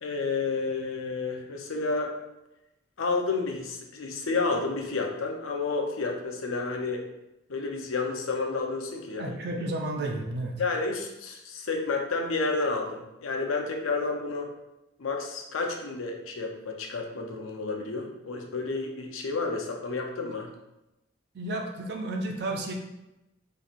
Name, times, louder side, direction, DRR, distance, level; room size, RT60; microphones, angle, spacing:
voice 1, 0.0-2.1 3.0-7.1 7.5-9.4 10.6-14.5 15.0-20.5, left 3 dB, 90° left, 2 dB, 0.6 m, -30 dB
voice 2, 9.2-10.6 21.3-22.7, right 2 dB, 55° right, 2 dB, 0.5 m, -32 dB
4.2 x 3.1 x 2.4 m, 0.93 s
head